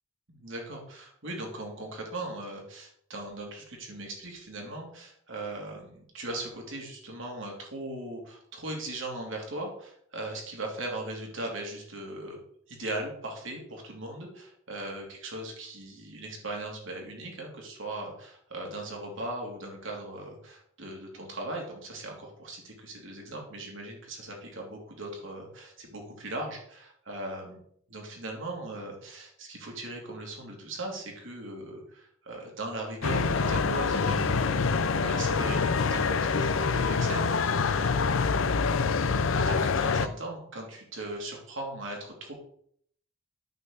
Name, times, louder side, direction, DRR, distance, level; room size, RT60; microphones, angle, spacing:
voice 1, 0.3-12.4 12.7-27.6 27.9-38.2 39.0-42.3, right 2 dB, 65° right, 0 dB, 3.0 m, -39 dB
sound 1, 33.0-40.1, left 4 dB, 65° left, 0.6 m, -26 dB
9.3 x 4.6 x 7.3 m, 0.65 s
head